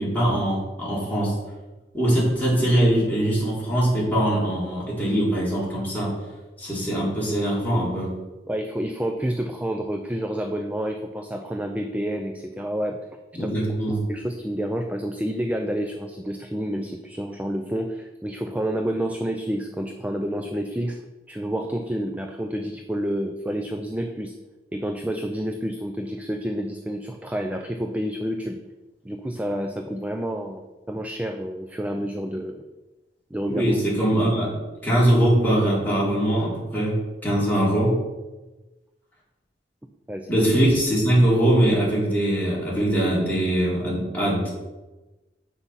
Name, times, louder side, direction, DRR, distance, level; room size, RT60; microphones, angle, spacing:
voice 1, 0.0-1.3 1.9-6.1 6.6-8.1 13.3-14.0 33.5-34.5 34.8-38.0 40.3-44.5, right 1 dB, 10° left, -7 dB, 3.4 m, -22 dB
voice 2, 8.5-13.0 13.4-13.5 13.9-21.0 21.3-24.3 24.7-28.6 29.0-32.6 33.3-33.8 40.1-40.4, equal, 10° right, 4 dB, 0.5 m, -29 dB
8.3 x 6.0 x 5.8 m, 1.1 s
head